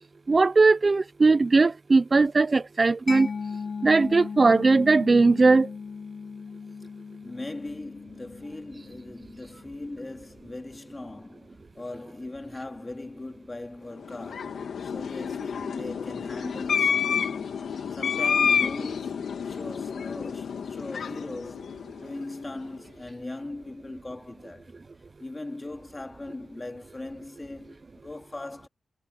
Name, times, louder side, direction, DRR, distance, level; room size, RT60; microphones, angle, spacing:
voice 1, 0.3-3.3 3.8-5.7, right 3 dB, 40° right, 0.6 m, -19 dB
Mallet percussion, 3.1-10.5, left 5 dB, 50° left, 1.1 m, -38 dB
voice 2, 7.2-17.5 17.9-24.7 25.2-28.7, left 2 dB, 25° left, 2.9 m, -39 dB
sound 1, 14.0-22.5, left 7 dB, 80° left, 2.0 m, -29 dB
cardioid pair, 85°, 0 cm